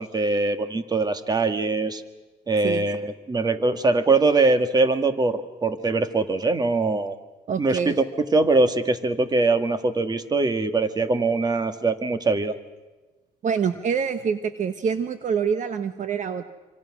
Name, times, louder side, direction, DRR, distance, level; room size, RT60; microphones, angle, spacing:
voice 1, 0.0-2.0 2.5-7.2 7.6-7.9 8.3-12.6, right 3 dB, 25° right, 9 dB, 1.9 m, -22 dB
voice 2, 7.5-7.9 13.4-16.4, right 6 dB, 45° right, 10 dB, 1.2 m, -26 dB
26.5 x 26.5 x 6.3 m, 1.2 s
cardioid pair, 110°, 17 cm